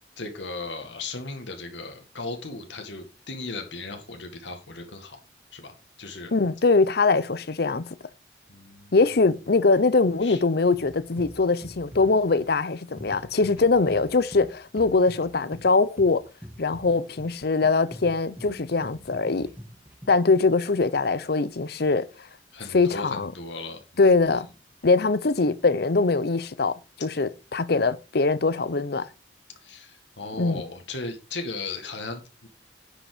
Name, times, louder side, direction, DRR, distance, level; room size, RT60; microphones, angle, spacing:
voice 1, 0.2-5.2 5.5-5.7 6.0-6.3 8.5-9.0 10.2-10.4 22.5-24.1 29.6-32.5, left 3 dB, 75° left, 1.9 m, -37 dB
voice 2, 6.3-7.9 8.9-16.2 16.6-19.5 20.1-22.1 22.7-23.3 24.0-24.5 24.8-29.1 30.4-30.6, left 3 dB, 55° left, 0.7 m, -22 dB
sound 1, 10.7-20.3, equal, 10° right, 1.6 m, -45 dB
10.0 x 5.3 x 4.9 m
head